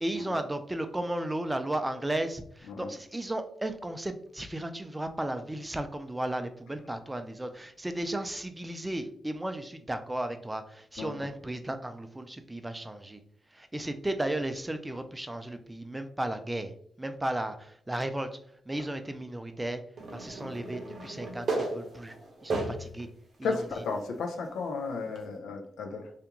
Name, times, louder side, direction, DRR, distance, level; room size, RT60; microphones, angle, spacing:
voice 1, 0.0-13.2 13.5-16.7 17.0-18.3 18.7-19.8 20.1-22.2 22.4-23.1 23.4-23.6, right 1 dB, 15° right, 8 dB, 0.3 m, -34 dB
sound 1, 20.0-23.0 23.6-23.7 25.2-25.3, right 2 dB, 60° right, 0.7 m, -34 dB
voice 2, 23.4-26.1, left 4 dB, 80° left, 4 dB, 0.4 m, -34 dB
2.4 x 2.3 x 2.8 m, 0.66 s
supercardioid pair, 45°, 0 cm